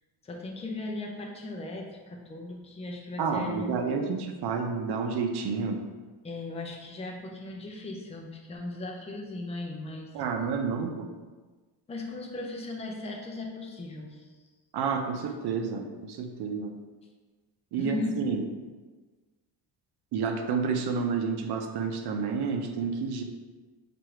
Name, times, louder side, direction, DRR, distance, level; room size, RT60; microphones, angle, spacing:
voice 1, 0.2-3.8 6.2-10.2 11.9-14.3 17.8-18.2, left 2 dB, 15° left, 0 dB, 0.5 m, -37 dB
voice 2, 3.2-5.8 10.1-11.1 14.7-16.7 17.7-18.4 20.1-23.2, right 5 dB, 70° right, 5 dB, 0.7 m, -30 dB
4.4 x 2.6 x 4.7 m, 1.3 s
cardioid pair, 150°, 42 cm